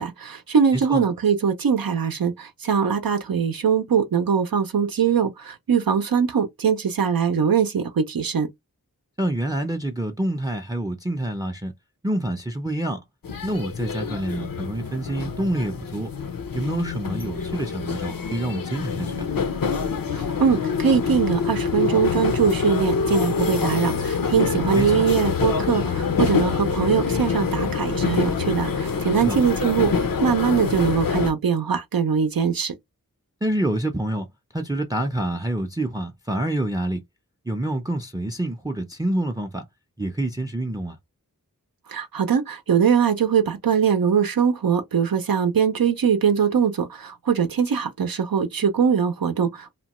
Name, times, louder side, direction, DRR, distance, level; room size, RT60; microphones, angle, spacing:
voice 1, 0.0-8.5 20.1-32.7 41.9-49.8, right 7 dB, 85° right, 0.6 m, -22 dB
voice 2, 9.2-11.7 12.0-13.0 13.4-16.1 16.5-19.3 24.8-25.1 29.2-29.4 33.4-34.3 34.5-37.0 37.5-39.6 40.0-41.0, right 1 dB, 10° right, 0.4 m, -27 dB
sound 1, 13.2-31.3, left 5 dB, 75° left, 0.6 m, -25 dB
2.8 x 2.2 x 2.9 m
wide cardioid pair, 55°, 34 cm